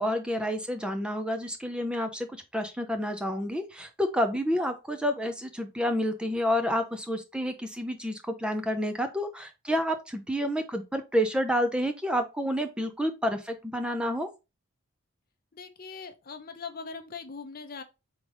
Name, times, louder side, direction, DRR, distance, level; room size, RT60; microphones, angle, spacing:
voice 1, 0.0-14.3, equal, 5° right, 0.5 m, -29 dB
voice 2, 15.5-17.8, left 5 dB, 45° left, 0.6 m, -41 dB
3.8 x 3.6 x 3.3 m
head